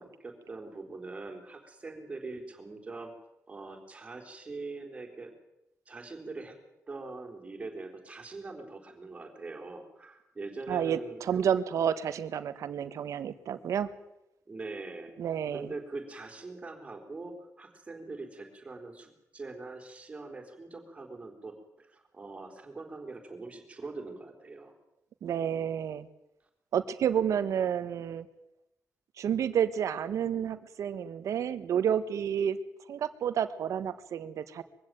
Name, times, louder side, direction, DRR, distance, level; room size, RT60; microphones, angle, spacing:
voice 1, 0.0-3.1 3.5-5.3 5.9-6.6 6.9-11.4 14.5-15.2 15.5-24.7, right 3 dB, 20° right, 2 dB, 3.9 m, -43 dB
voice 2, 10.7-13.9 15.2-15.7 25.2-26.1 26.7-28.3 29.2-32.6 32.9-34.6, right 8 dB, 70° right, 12 dB, 1.4 m, -30 dB
22.5 x 16.0 x 9.1 m, 0.89 s
wide cardioid pair, 160°, 5 cm